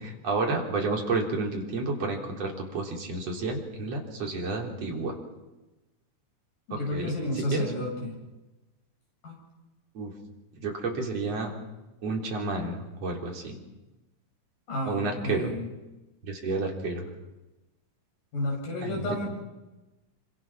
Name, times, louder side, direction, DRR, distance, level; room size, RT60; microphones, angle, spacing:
voice 1, 0.0-5.2 6.7-7.1 7.5-7.7 9.9-10.1 10.6-11.5 12.0-13.6 14.8-15.5 16.2-17.0 18.8-19.1, right 3 dB, 50° right, 0 dB, 4.5 m, -30 dB
voice 2, 6.7-8.2 9.2-9.3 14.7-15.7 18.3-19.3, left 1 dB, 90° left, -1 dB, 9.0 m, -31 dB
27.5 x 25.0 x 6.0 m, 1.1 s
omnidirectional pair, 3.7 m